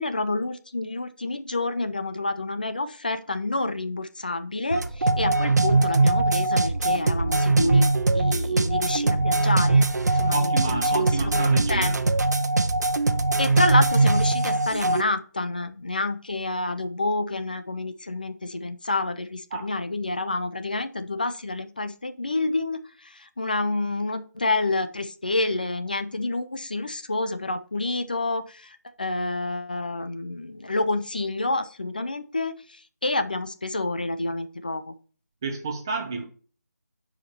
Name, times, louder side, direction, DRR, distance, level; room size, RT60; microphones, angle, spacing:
voice 1, 0.0-12.1 13.4-34.9, left 2 dB, 30° left, 11 dB, 0.4 m, -28 dB
sound 1, 4.7-15.0, right 2 dB, 75° right, 1.0 m, -21 dB
voice 2, 10.3-12.0 19.5-19.7 35.4-36.2, right 3 dB, 15° right, 2 dB, 0.9 m, -30 dB
10.5 x 4.9 x 4.4 m, 0.41 s
figure-of-eight pair, 175°, 9 cm